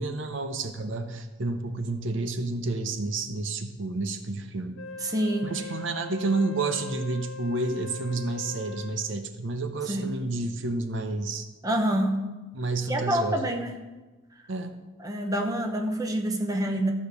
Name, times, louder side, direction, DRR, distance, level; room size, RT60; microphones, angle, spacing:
voice 1, 0.0-4.8 5.4-11.5 12.5-13.5 14.5-14.8, right 3 dB, 60° right, 7 dB, 0.7 m, -30 dB
Wind instrument woodwind instrument, 4.8-9.1, left 4 dB, 70° left, 0.6 m, -41 dB
voice 2, 5.0-5.5 9.9-10.0 11.6-12.2 12.9-13.7 15.0-16.9, right 1 dB, 15° right, 3 dB, 0.9 m, -27 dB
13.5 x 5.1 x 6.7 m, 1.2 s
head